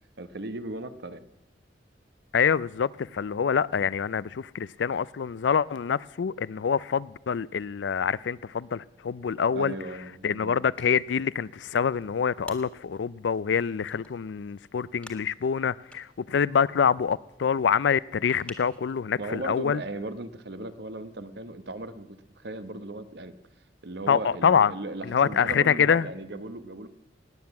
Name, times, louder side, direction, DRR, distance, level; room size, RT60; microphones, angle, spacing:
voice 1, 0.2-1.2 9.5-10.6 19.2-23.3 23.8-26.9, right 2 dB, 65° right, 1.0 m, -37 dB
voice 2, 2.3-9.7 10.2-19.8 24.1-24.7 25.0-26.1, left 7 dB, 80° left, 0.4 m, -25 dB
sound 1, 10.7-18.9, left 1 dB, 5° left, 1.8 m, -53 dB
18.0 x 9.6 x 7.1 m
head